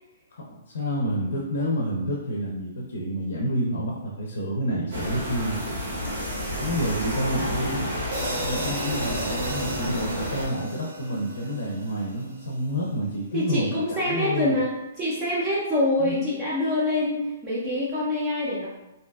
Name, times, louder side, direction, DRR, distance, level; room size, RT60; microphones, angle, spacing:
voice 1, 0.3-5.8 6.6-7.8 8.4-14.6 16.0-16.1, equal, 75° left, -2 dB, 0.5 m, -29 dB
sound 1, 4.9-10.5, equal, 85° right, 0.8 m, -30 dB
sound 2, 8.1-12.5, right 1 dB, 50° right, 0.7 m, -35 dB
voice 2, 13.3-18.7, left 1 dB, 10° right, -7 dB, 0.3 m, -25 dB
2.6 x 2.3 x 2.2 m, 0.95 s
hypercardioid pair, 175°, 0 cm